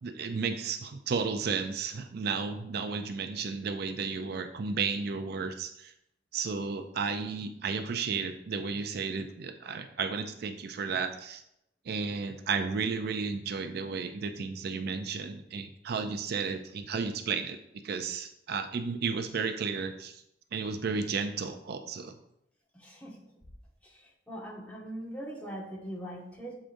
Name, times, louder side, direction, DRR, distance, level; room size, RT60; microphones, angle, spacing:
voice 1, 0.0-5.9 6.3-11.4 11.9-17.6 17.8-20.2 20.5-22.2, right 5 dB, 60° right, 7 dB, 0.4 m, -33 dB
voice 2, 22.8-23.2 24.3-26.6, right 1 dB, 10° left, -3 dB, 1.2 m, -40 dB
7.4 x 4.9 x 2.6 m, 0.79 s
head